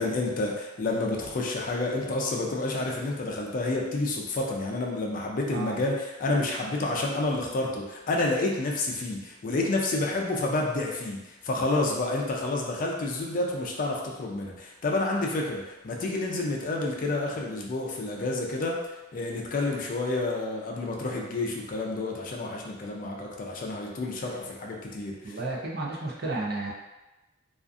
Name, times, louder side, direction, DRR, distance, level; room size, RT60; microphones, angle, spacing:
voice 1, 0.0-18.8 19.1-25.4, left 2 dB, 45° left, -1 dB, 0.4 m, -29 dB
voice 2, 25.2-26.7, right 2 dB, 55° right, -2 dB, 0.5 m, -32 dB
2.4 x 2.4 x 2.5 m, 1.1 s
head